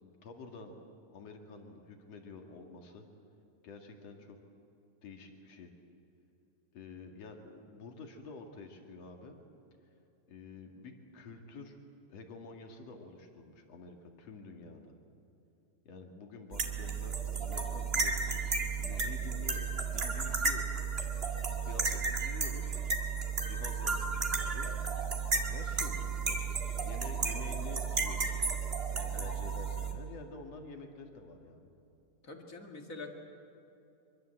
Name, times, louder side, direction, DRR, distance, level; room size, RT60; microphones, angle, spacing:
voice 1, 0.0-0.8 1.1-3.1 3.6-4.4 5.0-5.8 6.7-9.4 10.3-11.8 12.1-15.0 15.8-20.8 21.6-22.7 23.5-24.8 25.4-28.4 28.9-31.7, left 3 dB, 50° left, 3 dB, 3.1 m, -49 dB
sound 1, 16.5-29.9, right 5 dB, 25° right, 1.4 m, -33 dB
voice 2, 32.2-33.1, left 3 dB, 30° left, 3 dB, 1.9 m, -45 dB
24.5 x 23.5 x 7.9 m, 2.9 s
omnidirectional pair, 3.9 m